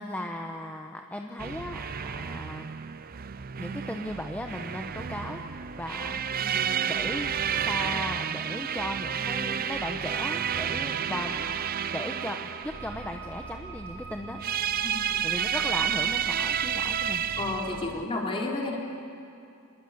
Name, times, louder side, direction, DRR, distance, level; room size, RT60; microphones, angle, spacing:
voice 1, 0.0-2.7 3.6-5.4 5.8-6.2 6.9-7.3 7.6-11.5 11.9-14.4 15.2-17.2, left 1 dB, 5° left, 3 dB, 1.0 m, -36 dB
sound 1, 1.4-18.0, right 8 dB, 45° right, 0.5 m, -31 dB
Wind instrument woodwind instrument, 9.8-15.3, right 4 dB, 70° right, 2.9 m, -46 dB
voice 2, 14.8-15.2 17.4-18.8, left 2 dB, 25° left, -1 dB, 3.5 m, -32 dB
26.0 x 21.5 x 8.0 m, 2.6 s
head